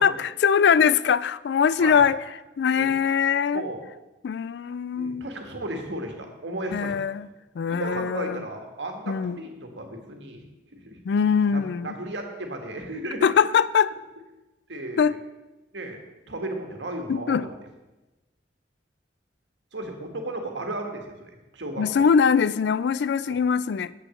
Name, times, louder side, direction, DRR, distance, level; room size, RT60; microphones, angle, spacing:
voice 1, 0.0-2.2 2.6-3.7 4.2-5.2 6.7-7.3 7.6-8.4 9.1-9.4 11.1-11.9 13.2-13.9 15.0-15.2 17.1-17.4 21.8-23.9, left 6 dB, 65° left, 18 dB, 0.3 m, -22 dB
voice 2, 4.9-6.9 7.7-10.4 10.7-11.0 11.5-13.3 14.7-15.2 15.7-16.0 16.3-17.5 19.7-22.1 23.3-23.4, right 1 dB, 75° right, 4 dB, 1.5 m, -34 dB
8.3 x 6.0 x 6.9 m, 1.1 s
head